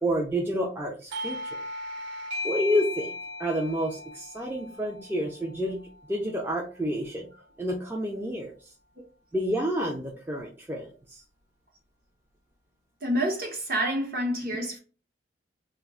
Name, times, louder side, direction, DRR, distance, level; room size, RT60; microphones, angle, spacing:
voice 1, 0.0-1.6 2.4-3.1 3.4-5.8 6.1-7.3 7.6-8.7 9.3-11.2, equal, 10° right, 0.3 m, -29 dB
Doorbell, 1.1-6.4, left 2 dB, 75° right, 0.6 m, -37 dB
voice 2, 13.0-14.8, right 1 dB, 50° right, 0.9 m, -28 dB
2.3 x 2.2 x 3.5 m
head